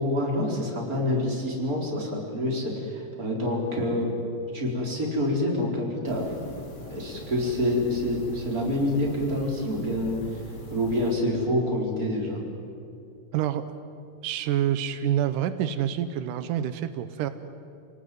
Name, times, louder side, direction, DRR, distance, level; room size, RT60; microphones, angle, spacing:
voice 1, 0.0-4.2 4.5-6.3 6.9-10.4 10.7-12.4, left 1 dB, 25° right, -2 dB, 4.7 m, -27 dB
sound 1, 6.0-11.1, left 2 dB, 35° left, 3.0 m, -42 dB
voice 2, 14.2-17.3, right 10 dB, 90° right, 11 dB, 2.5 m, -27 dB
28.5 x 18.5 x 9.3 m, 2.6 s
omnidirectional pair, 3.6 m